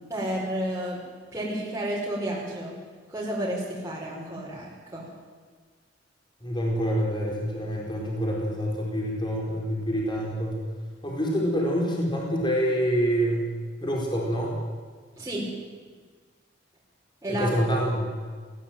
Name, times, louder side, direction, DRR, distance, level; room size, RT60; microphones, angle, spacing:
voice 1, 0.1-1.0 1.3-2.8 3.1-5.1 15.2-15.5 17.2-17.5, right 1 dB, 15° right, -6 dB, 5.2 m, -31 dB
voice 2, 6.4-10.6 11.0-13.4 13.8-14.5 17.3-18.1, equal, 25° left, -2 dB, 4.6 m, -26 dB
19.5 x 17.0 x 9.2 m, 1.5 s
head